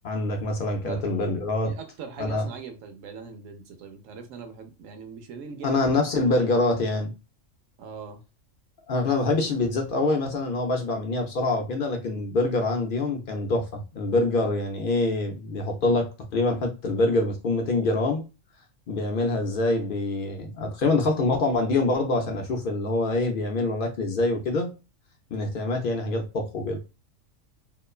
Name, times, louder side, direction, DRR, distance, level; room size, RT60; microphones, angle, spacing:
voice 1, 0.0-1.7 2.2-2.5 5.6-7.1 8.9-18.2 18.9-24.7 25.3-26.8, left 2 dB, 60° left, 0.5 m, -25 dB
voice 2, 1.6-5.8 6.2-6.5 7.8-8.2, right 6 dB, 90° right, 1.0 m, -41 dB
2.9 x 2.1 x 2.2 m
omnidirectional pair, 1.3 m